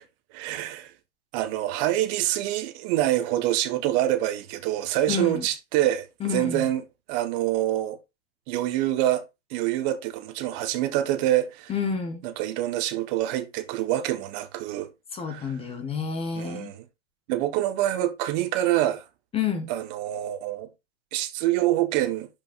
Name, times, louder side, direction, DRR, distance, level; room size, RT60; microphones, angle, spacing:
voice 1, 0.3-0.9 1.3-6.8 7.1-8.0 8.5-9.2 9.5-11.7 12.2-14.9 15.3-15.5 16.3-16.8 17.3-19.0 19.7-20.7 21.1-22.3, right 14 dB, 35° right, 1.3 m, -26 dB
voice 2, 5.1-5.5 6.2-6.7 11.7-12.2 15.1-16.7 19.3-19.7, left 6 dB, 15° left, 1.0 m, -29 dB
11.5 x 5.2 x 2.5 m
hypercardioid pair, 130°, 36 cm